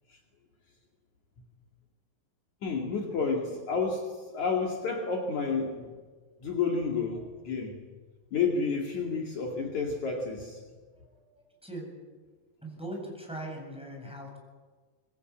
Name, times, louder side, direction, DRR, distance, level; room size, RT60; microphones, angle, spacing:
voice 1, 2.6-5.9 6.4-7.8 8.3-10.6, left 4 dB, 55° left, 0 dB, 3.4 m, -30 dB
voice 2, 10.9-11.9 12.6-14.4, right 1 dB, ahead, 0 dB, 7.6 m, -41 dB
26.0 x 21.5 x 8.7 m, 1.5 s
omnidirectional pair, 4.1 m